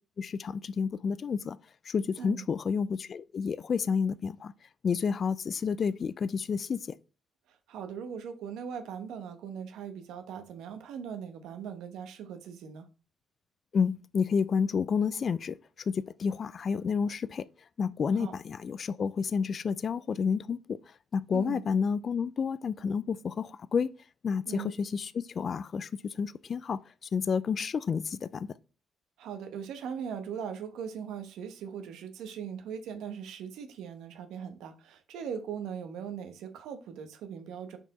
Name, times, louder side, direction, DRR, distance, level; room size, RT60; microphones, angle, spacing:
voice 1, 0.2-1.6 1.8-4.5 4.8-7.0 13.7-17.5 17.8-23.9 24.2-28.5, left 6 dB, 50° left, 0.3 m, -30 dB
voice 2, 7.5-12.9 18.1-18.3 21.3-21.6 24.5-24.7 29.2-37.8, right 7 dB, 85° right, 1.0 m, -40 dB
5.8 x 4.4 x 4.1 m
cardioid pair, 90°, 0 cm